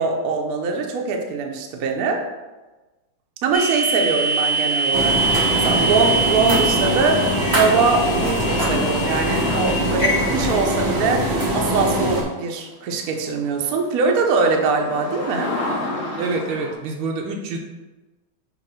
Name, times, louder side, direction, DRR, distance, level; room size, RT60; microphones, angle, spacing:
voice 1, 0.0-2.2 3.4-5.2 5.5-11.3 11.5-15.5, right 4 dB, 60° right, 2 dB, 1.0 m, -22 dB
sound 1, 3.5-11.1, right 3 dB, 70° left, 0.5 m, -24 dB
sound 2, 4.9-12.2, right 1 dB, 20° right, 0.5 m, -22 dB
sound 3, 8.0-8.5 12.1-12.2 12.7-12.8 13.0-16.7, left 2 dB, 35° left, 1.5 m, -32 dB
voice 2, 16.2-17.6, right 3 dB, 85° right, 2 dB, 1.6 m, -26 dB
6.4 x 3.0 x 5.5 m, 1.1 s
omnidirectional pair, 2.2 m